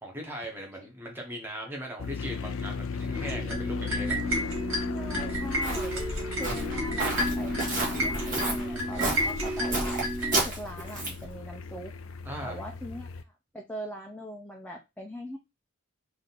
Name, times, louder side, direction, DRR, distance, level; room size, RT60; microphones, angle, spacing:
voice 1, 0.0-4.2 12.2-12.6, equal, 10° right, 0 dB, 1.4 m, -39 dB
sound 1, 2.0-13.2, left 5 dB, 75° left, 0.5 m, -37 dB
sound 2, 3.1-10.4, equal, 70° right, 2.3 m, -31 dB
voice 2, 4.6-6.0 6.4-10.0 10.4-11.9 12.4-13.3 13.5-15.4, equal, 5° left, -1 dB, 0.7 m, -41 dB
Walk footsteps, 5.0-11.3, right 2 dB, 40° right, 1.7 m, -32 dB
3.8 x 2.9 x 4.2 m, 0.23 s
head